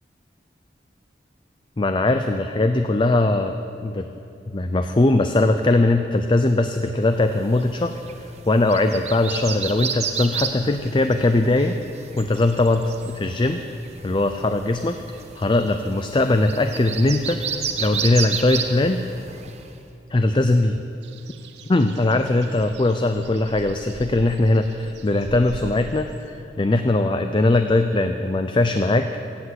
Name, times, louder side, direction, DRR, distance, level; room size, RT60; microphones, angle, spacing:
voice 1, 1.8-4.1 4.5-11.8 12.2-13.6 14.0-15.0 15.4-17.4 17.8-19.0 20.1-20.8 21.7-29.1, left 2 dB, 30° left, 7 dB, 0.5 m, -20 dB
sound 1, 7.3-19.7, right 6 dB, 40° right, 0.9 m, -32 dB
sound 2, 21.0-26.4, right 3 dB, 80° right, 0.6 m, -42 dB
15.5 x 8.2 x 7.9 m, 2.7 s
head